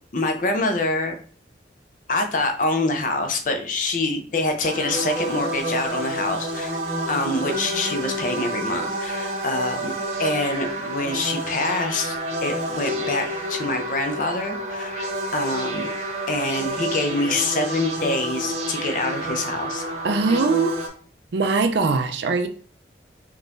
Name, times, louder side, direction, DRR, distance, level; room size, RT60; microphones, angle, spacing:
voice 1, 0.1-1.2 2.1-6.8 7.1-9.9 10.2-12.2 12.4-15.9 16.3-20.0, left 2 dB, 45° left, 5 dB, 0.5 m, -25 dB
sound 1, 4.6-20.9, right 1 dB, 35° right, 0.7 m, -29 dB
voice 2, 20.0-20.8 21.3-22.5, right 4 dB, 70° right, 7 dB, 0.5 m, -21 dB
3.8 x 2.8 x 2.5 m, 0.42 s
head